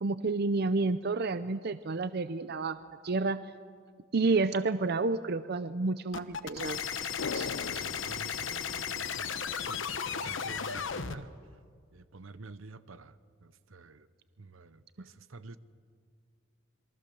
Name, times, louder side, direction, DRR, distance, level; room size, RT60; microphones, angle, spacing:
voice 1, 0.0-2.8 3.0-3.4 4.1-6.8 7.3-7.8, right 3 dB, 50° right, 0.6 m, -30 dB
sound 1, 6.1-11.2, left 7 dB, 65° left, 1.1 m, -35 dB
sound 2, 7.2-9.7 9.9-10.0, left 5 dB, 85° left, 0.6 m, -41 dB
voice 2, 7.6-11.3 11.9-14.1 14.4-15.6, right 3 dB, 80° right, 0.9 m, -49 dB
27.0 x 23.0 x 7.0 m
head